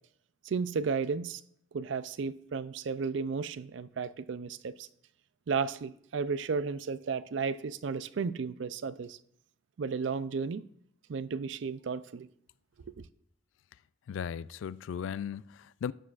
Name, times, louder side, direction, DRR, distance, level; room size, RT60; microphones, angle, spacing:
voice 1, 0.4-1.4 1.7-4.9 5.5-9.2 9.8-10.6 11.1-12.3 13.0-13.1, right 5 dB, 70° right, 0.4 m, -33 dB
voice 2, 14.1-15.9, left 7 dB, 75° left, 0.3 m, -37 dB
12.5 x 9.6 x 2.5 m
head